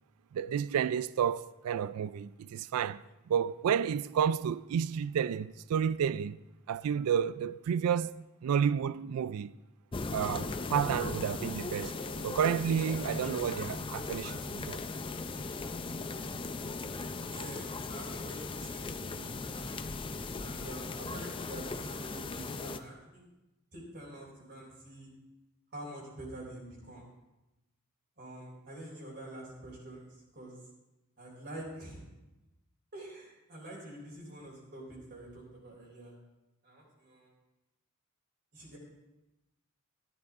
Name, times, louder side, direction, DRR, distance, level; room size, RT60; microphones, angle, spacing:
voice 1, 0.3-3.0 3.3-6.4 6.7-9.5 10.1-11.9 12.2-14.8, right 8 dB, 85° right, 0.3 m, -31 dB
sound 1, 9.9-22.8, left 3 dB, 25° left, 0.5 m, -38 dB
voice 2, 17.3-19.7 20.4-23.2 23.7-25.1 25.7-27.1 28.2-30.6 31.2-32.0 32.9-36.2 36.6-37.3 38.5-38.8, right 1 dB, 50° right, 4.0 m, -46 dB
14.0 x 11.5 x 3.6 m
head